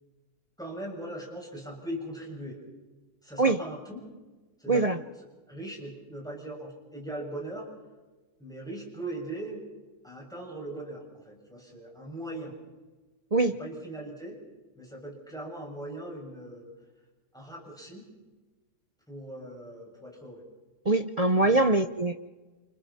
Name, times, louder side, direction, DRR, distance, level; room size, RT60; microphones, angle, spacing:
voice 1, 0.6-2.6 3.2-4.0 4.6-4.8 5.5-7.7 8.4-9.6 10.0-12.6 13.6-14.4 14.7-16.7 17.3-18.0 19.1-20.4 21.4-21.9, right 1 dB, ahead, -1 dB, 6.4 m, -40 dB
voice 2, 4.7-5.0 13.3-13.6 20.8-22.2, right 2 dB, 40° right, 7 dB, 0.5 m, -23 dB
29.0 x 28.5 x 4.3 m, 1.2 s
omnidirectional pair, 1.7 m